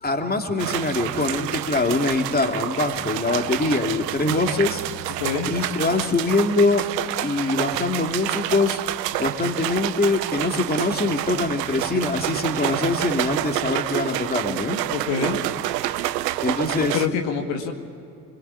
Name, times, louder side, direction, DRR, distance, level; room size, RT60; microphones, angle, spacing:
voice 1, 0.0-4.8 5.5-6.8 7.2-8.8 9.2-14.8 16.4-17.0, left 3 dB, 20° left, 4 dB, 2.7 m, -23 dB
sound 1, 0.6-17.1, right 14 dB, 85° right, 0.7 m, -28 dB
voice 2, 5.2-5.5 14.9-15.4 16.7-17.7, left 7 dB, 70° left, 3 dB, 2.1 m, -26 dB
24.5 x 21.5 x 9.8 m, 2.6 s
hypercardioid pair, 50°, 48 cm